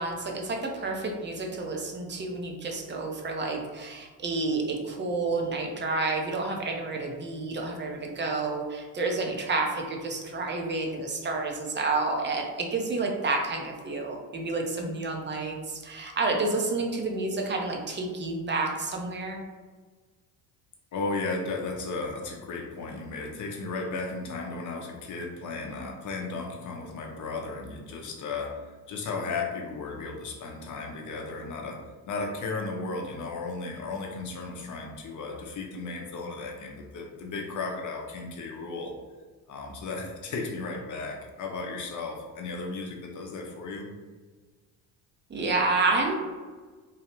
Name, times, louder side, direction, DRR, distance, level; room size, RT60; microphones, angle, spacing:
voice 1, 0.0-19.4 45.3-46.1, right 3 dB, 25° right, 1 dB, 0.6 m, -29 dB
voice 2, 20.9-28.6 28.9-31.8 32.1-38.9 39.5-43.9, left 3 dB, 40° left, 1 dB, 0.7 m, -35 dB
3.1 x 2.3 x 3.0 m, 1.4 s
hypercardioid pair, 65°, 47 cm